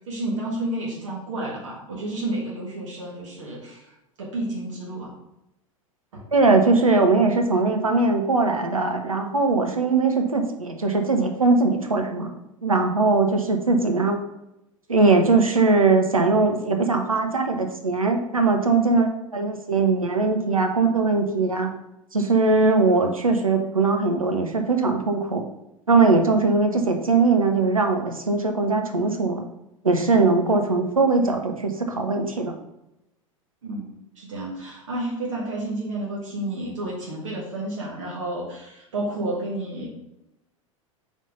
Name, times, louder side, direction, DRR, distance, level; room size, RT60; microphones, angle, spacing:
voice 1, 0.1-3.9 4.2-5.1 6.1-6.2 33.6-39.9, right 1 dB, 65° right, -4 dB, 1.7 m, -31 dB
voice 2, 6.3-12.3 12.6-14.2 14.9-21.7 22.1-25.4 25.9-29.4 29.8-32.6, right 3 dB, 85° right, 4 dB, 0.7 m, -20 dB
4.5 x 4.2 x 5.3 m, 0.88 s
figure-of-eight pair, 85°, 17 cm